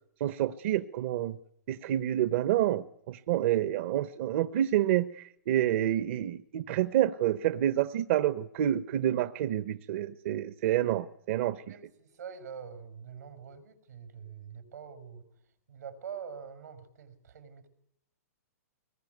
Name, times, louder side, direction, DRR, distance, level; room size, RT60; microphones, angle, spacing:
voice 1, 0.2-1.4 1.7-11.6, right 12 dB, 45° right, 12 dB, 1.0 m, -28 dB
voice 2, 11.7-15.2 15.7-17.7, right 7 dB, 85° right, 10 dB, 5.7 m, -45 dB
23.0 x 20.5 x 9.4 m, 0.77 s
hypercardioid pair, 150°, 9 cm